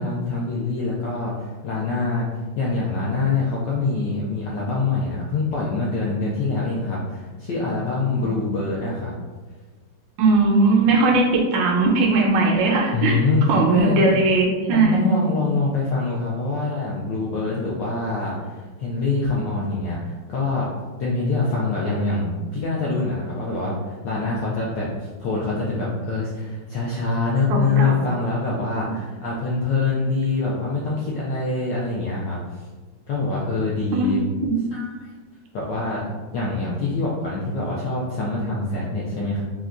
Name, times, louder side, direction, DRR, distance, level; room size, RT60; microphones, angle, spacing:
voice 1, 0.0-2.3 2.6-9.1 12.9-14.1 14.7-20.0 20.3-20.7 21.0-32.4 33.1-34.2 34.7-35.1 35.5-36.0 36.3-39.4, left 3 dB, 80° left, -5 dB, 1.0 m, -25 dB
voice 2, 10.2-13.2 13.5-15.0 27.5-28.1 33.9-34.1 34.4-34.6, right 3 dB, 70° right, -1 dB, 1.2 m, -19 dB
3.8 x 2.2 x 2.4 m, 1.3 s
omnidirectional pair, 2.4 m